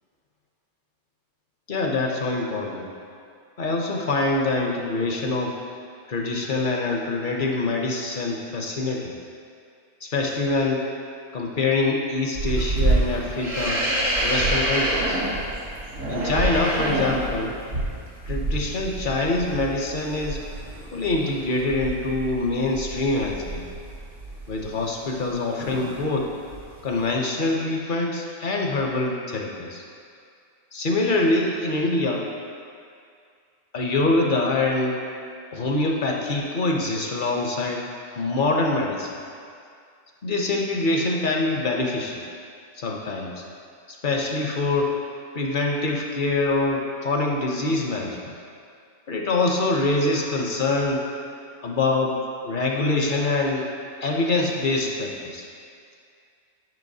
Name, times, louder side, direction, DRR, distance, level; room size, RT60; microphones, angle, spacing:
voice 1, 1.7-2.9 3.6-5.6 6.1-9.1 10.0-10.9 11.3-13.8 14.2-15.2 16.1-17.6 18.3-20.4 20.9-23.6 24.5-26.3 26.8-29.8 30.7-32.3 33.7-35.0 35.5-37.9 38.2-39.1 40.2-42.2 42.8-43.4 43.9-45.0 45.3-48.3 49.1-51.0 51.6-53.7 54.0-55.5, left 2 dB, 50° left, 0 dB, 0.7 m, -25 dB
sound 1, 12.3-25.3 25.6-26.1 26.5-27.1, right 1 dB, 80° right, 1.9 m, -27 dB
10.5 x 5.7 x 2.7 m, 2.3 s
omnidirectional pair, 1.3 m